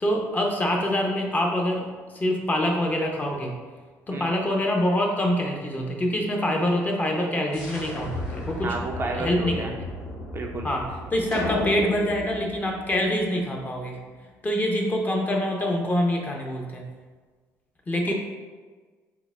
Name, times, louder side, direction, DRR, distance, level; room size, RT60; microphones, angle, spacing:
voice 1, 0.0-1.8 2.1-3.5 4.1-8.8 9.1-9.7 10.6-10.8 11.1-14.0 14.4-16.9 17.9-18.1, equal, 25° left, 0 dB, 0.7 m, -25 dB
sound 1, 7.5-13.0, left 2 dB, 80° left, 1.3 m, -37 dB
voice 2, 8.6-9.7 10.3-10.7, right 3 dB, 35° right, 2 dB, 0.4 m, -31 dB
sound 2, 11.3-13.8, left 3 dB, 55° left, 1.0 m, -32 dB
5.7 x 2.1 x 2.3 m, 1.4 s
supercardioid pair, 80°, 7 cm